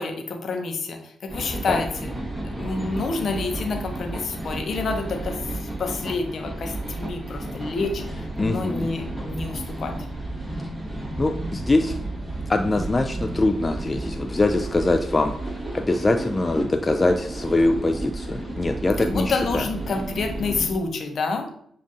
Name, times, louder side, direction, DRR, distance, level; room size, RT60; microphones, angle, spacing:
voice 1, 0.0-2.1 2.5-6.7 7.0-10.0 19.0-21.5, left 4 dB, 60° left, 5 dB, 0.7 m, -28 dB
sound 1, 1.3-20.8, right 1 dB, 15° right, 1.4 m, -32 dB
voice 2, 8.4-8.9 11.2-11.9 12.5-15.3 15.7-19.7, left 2 dB, 30° left, 5 dB, 0.3 m, -23 dB
7.1 x 2.5 x 2.6 m, 0.68 s
hypercardioid pair, 40°, 0 cm